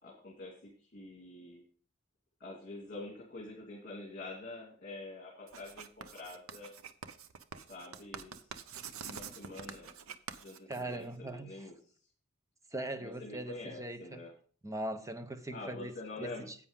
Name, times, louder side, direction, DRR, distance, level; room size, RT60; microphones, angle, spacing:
voice 1, 0.0-1.6 2.4-6.7 7.7-8.5 9.0-10.0 10.4-11.7 13.0-14.3 15.5-16.5, left 2 dB, 40° left, 2.4 m, -46 dB
Writing, 5.5-11.3, right 6 dB, 80° right, 0.7 m, -46 dB
voice 2, 10.7-11.7 12.7-14.2 14.6-15.9 16.2-16.6, right 1 dB, 15° right, 0.8 m, -40 dB
10.0 x 8.6 x 3.6 m
head